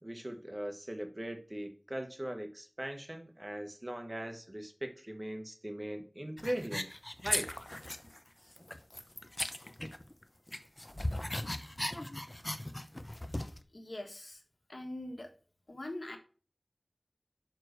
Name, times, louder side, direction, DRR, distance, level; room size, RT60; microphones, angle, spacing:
voice 1, 0.0-6.9 7.2-7.5, right 1 dB, 30° right, 5 dB, 1.3 m, -40 dB
sound 1, 6.4-8.2 8.5-10.2 10.5-13.6, left 1 dB, 35° left, 0.7 m, -38 dB
voice 2, 13.7-14.4 14.7-15.3 15.7-16.2, left 1 dB, 70° left, 3 dB, 1.6 m, -42 dB
5.9 x 4.6 x 6.4 m, 0.38 s
wide cardioid pair, 45°, 0 cm